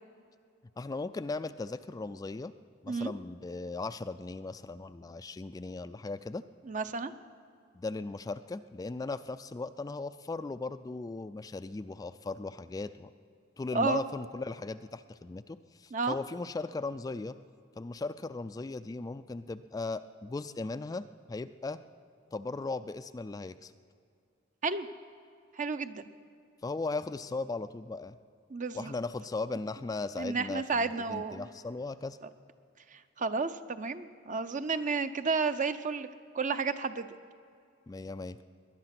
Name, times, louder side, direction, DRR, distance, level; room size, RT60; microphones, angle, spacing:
voice 1, 0.8-2.5 2.8-6.4 7.7-13.1 13.6-17.4 17.8-21.8 22.3-23.7 26.6-28.2 28.7-32.2 37.9-38.4, left 3 dB, 20° left, 11 dB, 0.3 m, -37 dB
voice 2, 6.7-7.1 13.7-14.0 15.9-16.2 24.6-24.9 25.5-26.1 28.5-28.9 30.2-31.5 32.9-36.1 36.3-37.1, right 4 dB, 40° right, 11 dB, 0.6 m, -32 dB
19.5 x 11.0 x 5.9 m, 2.4 s
head